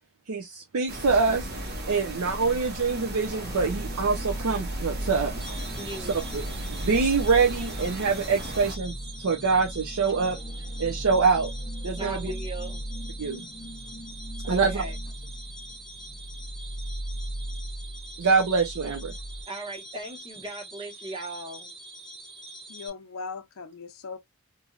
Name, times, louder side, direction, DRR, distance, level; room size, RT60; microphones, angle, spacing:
voice 1, 0.3-1.5 1.9-5.3 6.3-6.4 6.7-10.4 10.8-11.5 11.8-12.3 13.2-13.4 14.5-14.8 18.2-19.1, right 4 dB, 75° right, 0.6 m, -25 dB
sound 1, 0.9-8.8, right 1 dB, 50° right, 1.1 m, -36 dB
sound 2, 2.8-19.4 19.9-20.0 20.4-20.5, right 1 dB, 20° left, 0.6 m, -37 dB
sound 3, 5.4-22.9, right 1 dB, ahead, 1.1 m, -45 dB
voice 2, 5.8-6.2 12.0-12.8 14.4-15.0 19.5-21.8, right 2 dB, 25° right, 1.2 m, -38 dB
voice 3, 22.7-24.2, left 4 dB, 70° left, 0.6 m, -38 dB
3.0 x 2.6 x 2.3 m
head